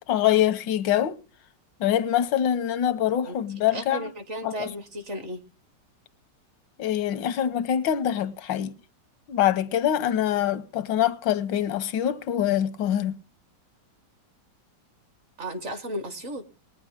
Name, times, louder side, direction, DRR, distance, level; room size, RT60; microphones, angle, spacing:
voice 1, 0.1-1.2 1.8-4.1 4.4-4.7 6.8-8.7 9.3-13.2, left 11 dB, 90° left, 1.5 m, -24 dB
voice 2, 3.7-5.4 15.4-16.5, equal, 45° right, 1.5 m, -34 dB
20.5 x 9.5 x 3.7 m
omnidirectional pair, 1.9 m